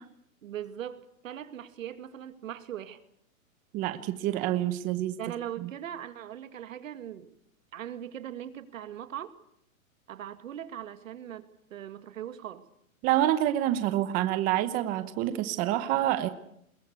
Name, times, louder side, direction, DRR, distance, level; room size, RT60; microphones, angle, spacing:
voice 1, 0.4-3.0 5.2-7.3 7.7-9.3 10.1-12.7, right 10 dB, 65° right, 11 dB, 2.2 m, -40 dB
voice 2, 3.7-5.1 5.6-5.7 13.0-16.3, right 13 dB, 20° right, 11 dB, 1.0 m, -27 dB
22.0 x 22.0 x 8.2 m, 0.72 s
hypercardioid pair, 160°, 42 cm